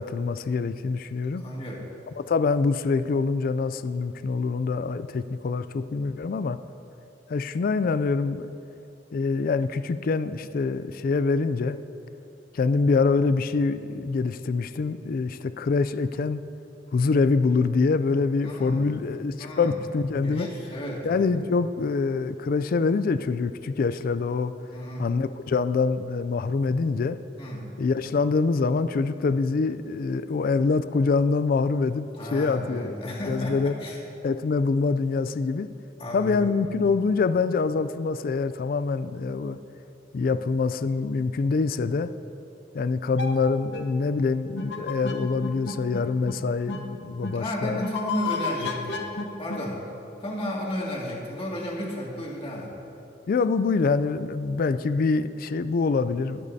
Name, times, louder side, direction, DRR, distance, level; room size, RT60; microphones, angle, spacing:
voice 1, 0.0-1.4 2.3-6.6 7.3-8.5 9.1-11.8 12.5-16.4 16.9-20.5 21.0-24.5 25.0-27.2 27.8-33.7 34.2-35.7 36.1-39.6 40.1-42.1 42.7-47.8 53.3-56.4, left 4 dB, 50° left, 13 dB, 0.3 m, -25 dB
voice 2, 1.4-1.8 18.4-18.9 19.4-19.8 20.2-21.3 24.7-25.1 27.4-27.6 32.2-34.0 36.0-36.5 47.4-49.0 49.4-49.8 50.2-52.8, equal, 30° left, -4 dB, 2.2 m, -33 dB
sound 1, 43.2-43.3 43.7-43.8 44.6-46.0 46.3-46.4 46.7-46.8 47.2-47.3 47.8-49.6, left 4 dB, 65° left, 1.0 m, -31 dB
24.0 x 8.3 x 2.8 m, 2.8 s
head